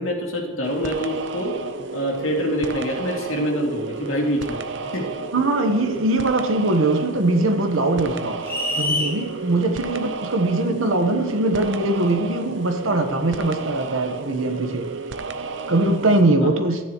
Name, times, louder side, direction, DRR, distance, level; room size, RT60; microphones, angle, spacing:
voice 1, 0.0-1.5 1.9-4.6 4.9-5.1 16.4-16.5, equal, 90° left, -1 dB, 2.3 m, -25 dB
sound 1, 0.6-16.2, right 4 dB, 60° right, 0.6 m, -32 dB
voice 2, 5.3-8.4 8.7-14.9 15.7-16.8, right 2 dB, 80° right, 6 dB, 1.2 m, -21 dB
sound 2, 8.4-9.2, left 1 dB, 10° left, 1.6 m, -24 dB
13.5 x 9.6 x 3.1 m, 1.4 s
head